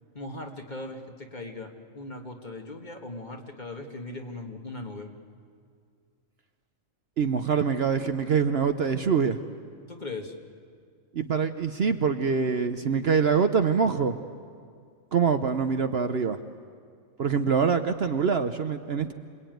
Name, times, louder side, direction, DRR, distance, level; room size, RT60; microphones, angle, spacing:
voice 1, 0.1-5.1 9.9-10.3, left 2 dB, 35° left, 2 dB, 1.9 m, -39 dB
voice 2, 7.2-9.4 11.1-14.2 15.1-16.4 17.2-19.1, right 6 dB, 55° right, 8 dB, 1.0 m, -24 dB
27.0 x 21.5 x 9.2 m, 2.1 s
omnidirectional pair, 1.4 m